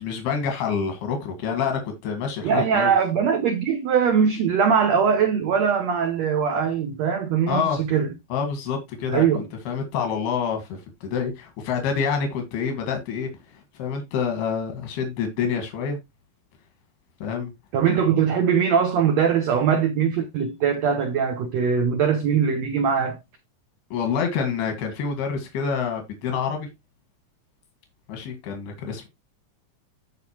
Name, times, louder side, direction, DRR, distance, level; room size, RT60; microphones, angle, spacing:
voice 1, 0.0-2.9 7.5-7.8 8.3-10.7 11.0-13.3 13.8-16.0 17.2-17.5 23.9-26.7 28.1-29.1, left 6 dB, 85° left, 3.7 m, -27 dB
voice 2, 2.4-8.1 9.1-9.5 17.7-23.2, right 7 dB, 85° right, 1.5 m, -21 dB
14.5 x 5.1 x 2.9 m
omnidirectional pair, 4.4 m